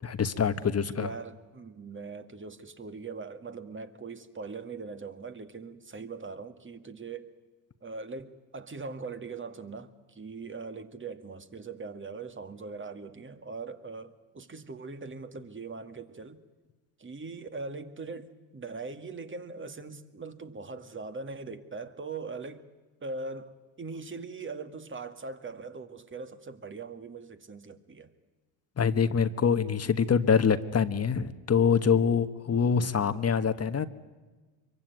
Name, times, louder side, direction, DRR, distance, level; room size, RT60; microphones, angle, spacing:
voice 1, 0.0-1.1 28.8-33.9, left 6 dB, 30° left, 1.5 m, -25 dB
voice 2, 0.8-7.3 7.8-16.4 17.0-22.7 23.0-28.1, right 4 dB, 25° right, 2.0 m, -41 dB
25.5 x 23.0 x 9.4 m
supercardioid pair, 90°, 50 cm